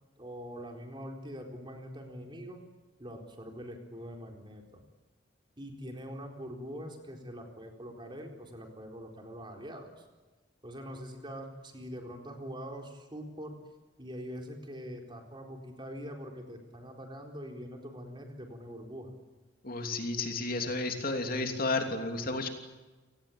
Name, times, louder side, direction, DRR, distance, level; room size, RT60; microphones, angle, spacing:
voice 1, 0.2-2.6 3.0-4.8 5.6-10.1 10.6-13.5 14.0-19.1, equal, 25° right, 2 dB, 4.2 m, -43 dB
voice 2, 19.6-22.5, left 3 dB, 50° left, 4 dB, 3.1 m, -32 dB
29.5 x 18.5 x 8.7 m, 1.2 s
head